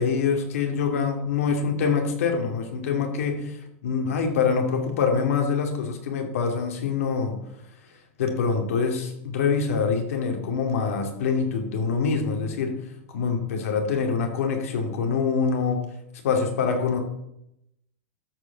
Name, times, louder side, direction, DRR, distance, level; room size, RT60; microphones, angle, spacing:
voice 1, 0.0-7.4 8.2-12.8 13.1-15.8 16.2-17.0, left 5 dB, 85° left, 4 dB, 2.4 m, -25 dB
13.0 x 4.9 x 6.6 m, 0.81 s
supercardioid pair, 170°, 8 cm